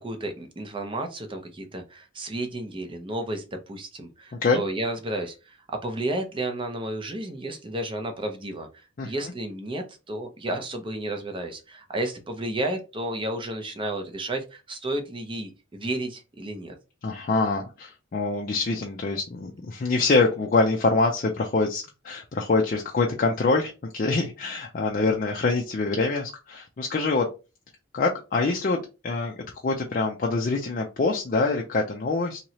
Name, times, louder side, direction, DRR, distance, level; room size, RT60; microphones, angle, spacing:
voice 1, 0.0-16.7, right 1 dB, 25° right, 5 dB, 0.5 m, -32 dB
voice 2, 4.3-4.6 9.0-9.1 17.0-27.3 27.9-29.3 29.6-32.4, left 3 dB, 40° left, 1 dB, 0.4 m, -25 dB
3.0 x 2.8 x 2.7 m, 0.30 s
head